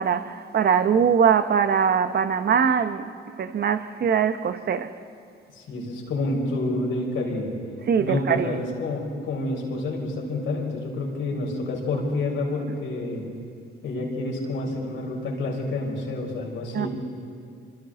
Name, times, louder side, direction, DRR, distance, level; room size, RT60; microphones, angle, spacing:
voice 1, 0.0-3.1 3.4-4.9 7.9-8.6 16.7-16.9, right 7 dB, 55° right, 1.0 m, -22 dB
voice 2, 5.5-7.5 8.0-13.2 13.8-16.9, left 2 dB, 80° left, 5.1 m, -28 dB
27.0 x 25.5 x 3.9 m
cardioid pair, 90°, 20 cm